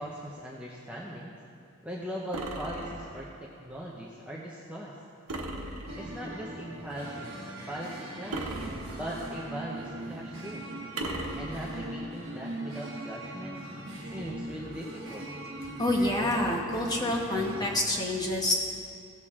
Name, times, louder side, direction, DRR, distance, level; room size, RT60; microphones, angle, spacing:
voice 1, 0.0-1.3 1.8-5.0 6.0-7.3 7.7-8.5 9.0-10.7 11.4-13.6 14.0-15.3, equal, 5° right, -5 dB, 0.7 m, -39 dB
sound 1, 2.3-3.4 5.3-6.3 8.3-9.4 11.0-12.0, right 2 dB, 90° right, 1.1 m, -38 dB
sound 2, 5.9-17.8, right 1 dB, 55° right, 1.3 m, -40 dB
voice 2, 15.8-18.5, left 1 dB, 15° left, -1 dB, 1.2 m, -27 dB
16.5 x 6.7 x 3.6 m, 2.5 s
head